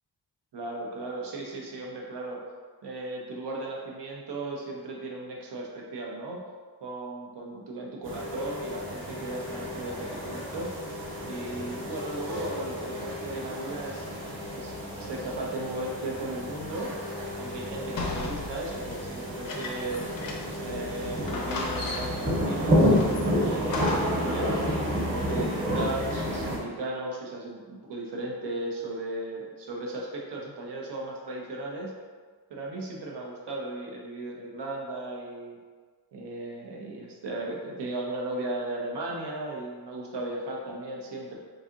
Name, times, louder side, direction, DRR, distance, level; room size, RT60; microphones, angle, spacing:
voice 1, 0.5-2.4 2.8-6.4 6.8-10.7 11.2-14.1 14.5-16.9 17.4-20.1 20.5-24.6 25.1-31.9 32.5-35.6 36.1-41.4, right 2 dB, 70° right, -1 dB, 0.7 m, -36 dB
sound 1, 8.0-26.6, equal, 30° right, 1.1 m, -30 dB
sound 2, 18.0-20.7 21.0-21.1 21.3-22.4 23.0-24.3, left 3 dB, 55° left, 0.5 m, -36 dB
4.0 x 2.7 x 2.4 m, 1.5 s
wide cardioid pair, 150°, 42 cm